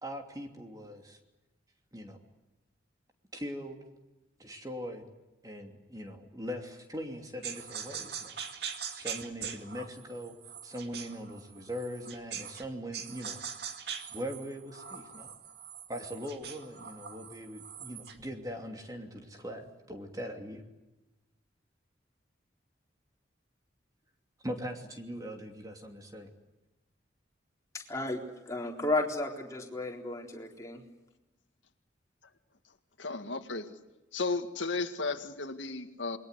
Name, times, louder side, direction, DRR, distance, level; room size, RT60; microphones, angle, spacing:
voice 1, 0.0-1.2 1.9-2.2 3.3-3.8 4.4-5.1 5.4-8.4 8.9-10.3 10.6-13.4 14.1-15.3 15.9-20.6 24.4-26.3, equal, 20° right, 4 dB, 2.9 m, -41 dB
sound 1, 7.4-12.7 12.9-18.2, right 7 dB, 60° right, 2.3 m, -42 dB
voice 2, 27.7-30.8, left 2 dB, 15° left, 0 dB, 3.9 m, -33 dB
voice 3, 33.0-33.8 34.1-36.2, left 3 dB, 85° left, 7 dB, 2.0 m, -34 dB
28.5 x 22.0 x 8.2 m, 1.0 s
head